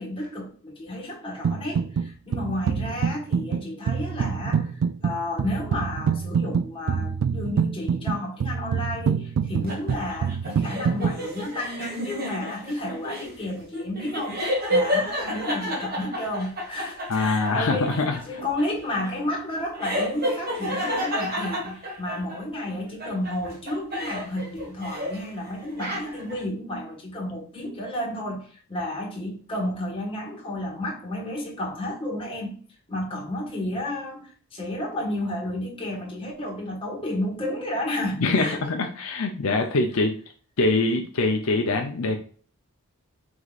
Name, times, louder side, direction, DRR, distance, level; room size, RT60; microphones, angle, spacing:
voice 1, 0.0-32.5 32.9-38.6, left 1 dB, 25° left, 1.5 m, -32 dB
sound 1, 1.4-2.1 2.3-11.2, right 6 dB, 65° right, 0.3 m, -26 dB
sound 2, 9.7-22.6 23.0-25.3 25.6-26.4, equal, 45° right, 1.7 m, -30 dB
voice 2, 17.1-18.2 38.2-40.2 40.6-42.2, left 3 dB, 70° left, 0.6 m, -23 dB
4.9 x 3.7 x 2.4 m
head